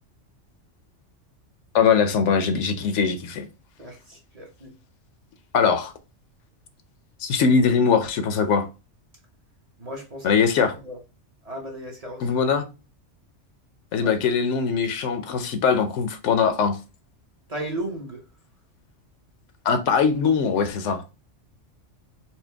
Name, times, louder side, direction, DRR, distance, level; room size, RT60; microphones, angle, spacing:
voice 1, 1.7-3.5 5.5-5.9 7.2-8.7 10.2-10.8 12.2-12.7 13.9-16.8 19.6-21.0, left 6 dB, 75° left, 0.9 m, -21 dB
voice 2, 3.8-4.7 9.8-10.3 10.8-11.0 11.4-12.3 14.0-14.1 17.5-18.2, right 1 dB, 35° right, 0.8 m, -35 dB
4.4 x 2.2 x 3.3 m
omnidirectional pair, 1.3 m